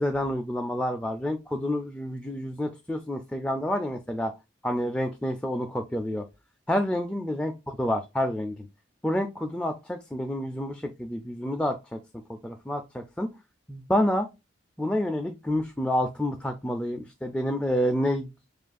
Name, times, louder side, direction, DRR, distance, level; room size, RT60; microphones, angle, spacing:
voice 1, 0.0-4.3 4.6-6.3 6.7-7.5 7.8-8.7 9.0-12.0 12.4-13.3 13.7-14.3 14.8-18.3, left 1 dB, 5° left, 5 dB, 0.3 m, -28 dB
7.3 x 2.4 x 2.3 m, 0.24 s
head